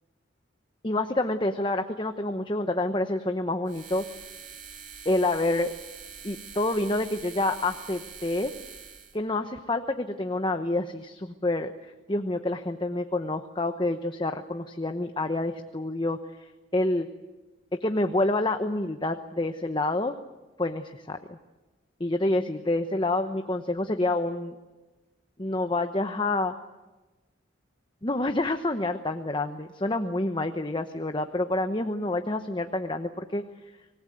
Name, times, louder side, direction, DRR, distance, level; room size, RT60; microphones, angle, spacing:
voice 1, 0.8-4.0 5.0-5.7 6.2-8.5 9.1-11.7 12.1-16.2 16.7-17.1 17.8-20.1 20.6-21.4 22.0-24.5 25.4-26.5 28.0-33.4, left 2 dB, 25° left, 7 dB, 1.0 m, -28 dB
sound 1, 3.6-9.2, right 7 dB, 40° right, 3.1 m, -45 dB
25.5 x 19.0 x 9.3 m, 1.2 s
head